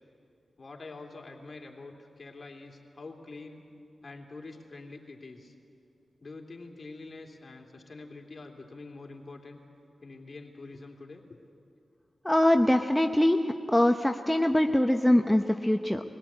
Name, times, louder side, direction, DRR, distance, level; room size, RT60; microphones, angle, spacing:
voice 1, 0.6-3.6 4.0-5.5 6.2-9.6 10.0-11.2, left 3 dB, 50° left, 1 dB, 2.9 m, -45 dB
voice 2, 12.2-16.0, left 1 dB, 10° left, 5 dB, 0.9 m, -23 dB
22.5 x 17.0 x 8.8 m, 2.5 s
cardioid pair, 45°, 0 cm